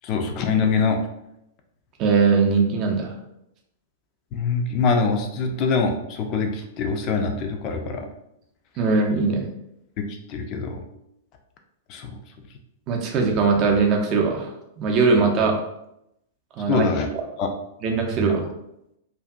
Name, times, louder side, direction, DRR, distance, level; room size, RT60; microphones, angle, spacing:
voice 1, 0.0-1.0 4.3-8.1 10.0-10.8 11.9-12.1 16.7-17.1 17.4-17.5, left 4 dB, 35° left, 4 dB, 0.3 m, -24 dB
voice 2, 2.0-3.1 8.8-9.5 12.9-14.5 14.8-15.6 16.6-16.9 17.8-18.4, right 4 dB, 35° right, 2 dB, 0.5 m, -20 dB
2.5 x 2.3 x 2.3 m, 0.81 s
figure-of-eight pair, 100°, 0 cm